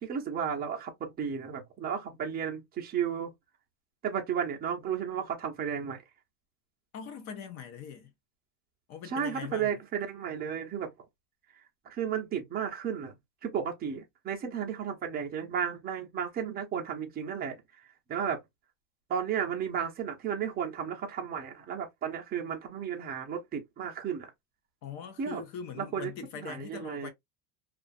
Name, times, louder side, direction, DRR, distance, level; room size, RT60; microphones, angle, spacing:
voice 1, 0.0-3.3 4.0-6.0 9.1-10.9 11.8-13.1 13.4-17.8 18.1-18.4 19.1-24.3 25.2-25.4 25.8-26.1 26.4-27.1, right 8 dB, 20° right, 0.6 m, -33 dB
voice 2, 6.9-8.1 8.9-9.8 24.8-27.1, left 7 dB, 40° left, 0.5 m, -42 dB
2.5 x 2.3 x 2.4 m
supercardioid pair, 140°, 45 cm